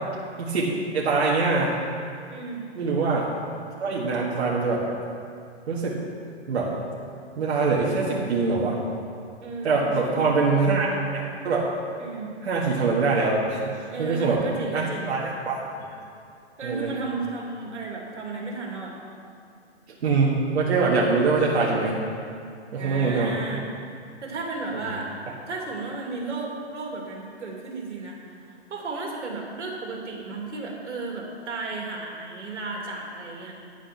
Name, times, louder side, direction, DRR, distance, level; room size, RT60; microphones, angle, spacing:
voice 1, 0.9-1.7 2.8-3.3 3.8-4.8 5.7-6.0 6.5-6.7 7.4-8.8 9.6-10.9 11.1-11.6 12.4-14.4 14.7-15.6 16.6-16.9 20.0-22.0 22.7-23.3 24.7-24.9, right 4 dB, 65° right, -5 dB, 1.8 m, -23 dB
voice 2, 2.3-2.7 9.4-10.3 12.0-12.3 13.9-15.1 16.6-19.0 22.8-23.7 24.2-25.1 25.5-33.5, right 3 dB, 85° right, -1 dB, 2.6 m, -34 dB
10.5 x 7.4 x 6.0 m, 2.4 s
hypercardioid pair, 155°, 34 cm